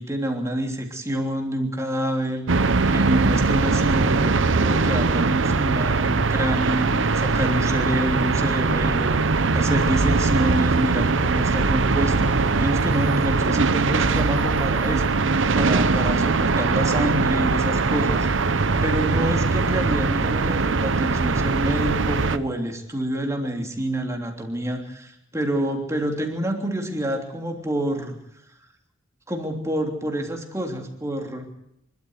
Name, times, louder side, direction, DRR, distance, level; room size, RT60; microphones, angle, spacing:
voice 1, 0.0-2.4 2.9-15.0 15.5-18.3 18.8-28.2 29.3-31.5, right 1 dB, 15° right, 2 dB, 3.2 m, -27 dB
sound 1, 2.5-22.4, right 3 dB, 75° right, 0.9 m, -21 dB
25.5 x 13.0 x 8.1 m, 0.79 s
head